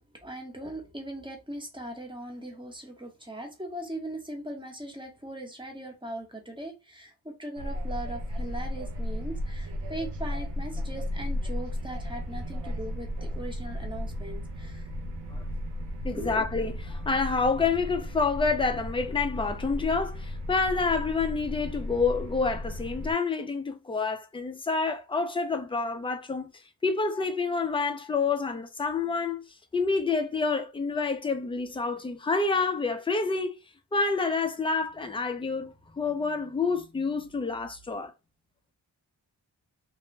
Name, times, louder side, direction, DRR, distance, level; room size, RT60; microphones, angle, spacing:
voice 1, 0.0-14.8 16.2-16.4, right 1 dB, 10° right, 0.8 m, -39 dB
sound 1, 7.6-23.1, left 1 dB, 75° right, 0.7 m, -35 dB
voice 2, 16.0-26.5 26.8-29.4 29.7-33.5 33.9-38.1, left 4 dB, 15° left, 0.4 m, -28 dB
2.5 x 2.1 x 3.2 m
wide cardioid pair, 105°, 42 cm